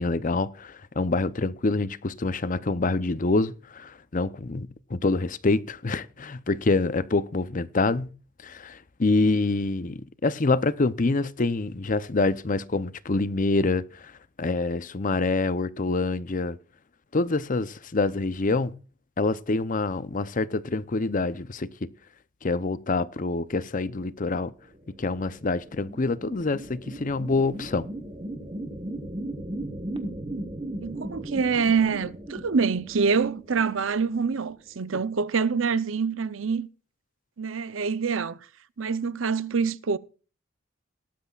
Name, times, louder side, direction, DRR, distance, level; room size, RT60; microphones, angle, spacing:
voice 1, 0.0-8.1 8.4-14.1 14.4-16.6 17.1-18.8 19.2-21.9 22.4-24.5 25.0-27.9, left 3 dB, 40° left, 0.7 m, -26 dB
sound 1, 24.7-34.5, right 1 dB, 25° right, 1.4 m, -37 dB
voice 2, 30.8-36.7 37.4-38.4 38.8-40.0, right 5 dB, 75° right, 0.7 m, -26 dB
18.5 x 12.0 x 2.4 m
head